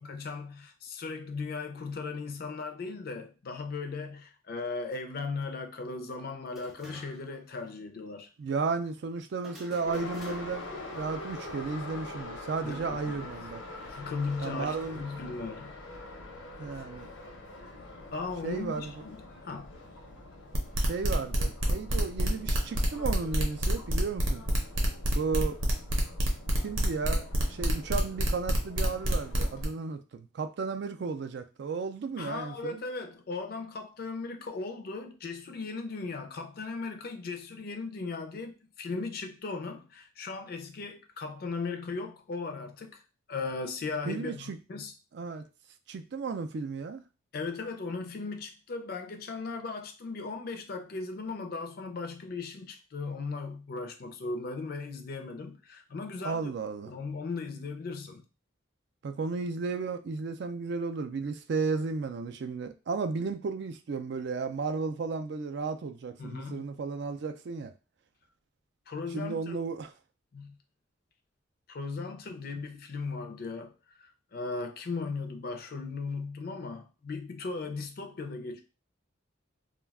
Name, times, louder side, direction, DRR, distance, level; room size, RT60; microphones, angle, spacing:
voice 1, 0.0-8.3 12.6-13.3 13.9-15.8 16.8-16.9 18.1-19.7 32.2-43.0 43.3-44.9 47.3-56.5 56.9-58.2 66.2-66.7 68.9-69.6 70.3-70.6 71.7-78.6, left 4 dB, 50° left, 0.4 m, -37 dB
sound 1, 6.5-7.4 7.7-7.8 9.4-10.8, right 1 dB, ahead, 0.5 m, -49 dB
voice 2, 8.4-10.7 10.9-13.6 14.4-15.0 16.6-17.1 18.4-18.9 20.8-24.5 25.1-25.6 26.6-32.8 44.1-44.6 45.1-45.5 45.9-47.0 56.2-56.9 59.0-67.7 69.1-69.9, right 4 dB, 55° right, 0.3 m, -34 dB
Subway metro underground, 9.9-29.7, left 2 dB, 85° left, 0.8 m, -45 dB
sound 2, 20.5-29.6, right 1 dB, 75° right, 0.7 m, -28 dB
2.3 x 2.2 x 3.4 m
head